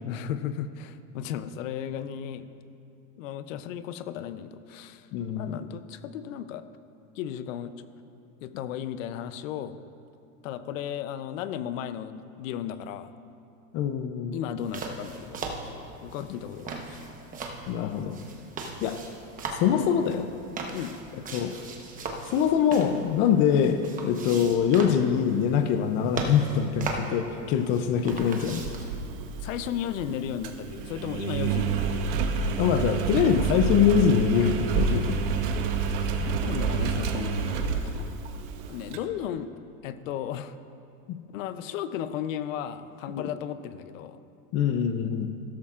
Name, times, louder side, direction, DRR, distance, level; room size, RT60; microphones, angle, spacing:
voice 1, 0.0-2.5 3.2-5.1 5.3-6.7 7.2-7.9 8.4-9.8 10.4-13.1 14.3-17.1 19.7-19.9 20.7-21.0 29.4-32.2 36.2-38.1 38.7-39.5 39.8-40.6 41.3-44.2, left 10 dB, 65° left, 12 dB, 0.7 m, -35 dB
voice 2, 5.1-5.6 13.7-14.3 17.7-18.2 18.8-19.0 19.6-20.3 21.3-21.5 22.3-28.6 32.6-35.2 41.1-41.2 43.1-43.3 44.5-45.3, left 8 dB, 30° left, 7 dB, 0.5 m, -24 dB
sound 1, 14.6-28.9, right 3 dB, 20° right, 1.0 m, -39 dB
Engine, 28.1-39.0, right 5 dB, 55° right, 1.1 m, -29 dB
15.5 x 13.0 x 2.5 m, 2.7 s
supercardioid pair, 145°, 42 cm